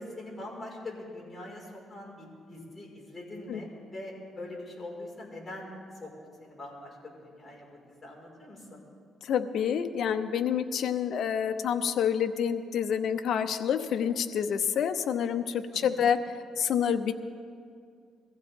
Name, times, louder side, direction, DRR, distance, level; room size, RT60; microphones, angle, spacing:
voice 1, 0.0-5.7 6.0-6.1 6.4-8.8 15.7-15.9, left 1 dB, 20° left, -4 dB, 5.3 m, -43 dB
voice 2, 9.2-16.2 16.6-17.1, left 8 dB, 70° left, 9 dB, 0.8 m, -28 dB
22.5 x 15.0 x 3.7 m, 2.3 s
cardioid pair, 90°, 0 cm